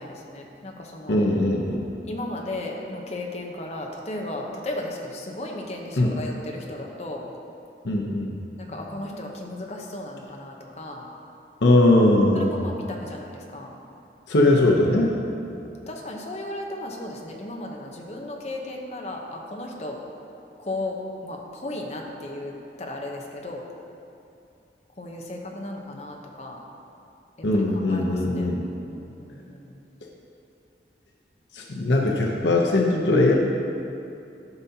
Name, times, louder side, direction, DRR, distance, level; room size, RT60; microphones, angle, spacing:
voice 1, 0.0-1.3 2.0-7.3 8.6-11.1 12.3-13.8 15.2-20.0 20.6-23.7 25.0-26.6 27.5-28.5 28.9-29.7, left 1 dB, 40° left, 0 dB, 0.8 m, -35 dB
voice 2, 1.1-1.8 5.9-6.1 7.8-8.3 11.6-12.6 14.3-15.1 27.4-28.6 31.5-33.3, left 2 dB, 85° left, -1 dB, 0.8 m, -20 dB
12.0 x 5.6 x 2.8 m, 2.7 s
head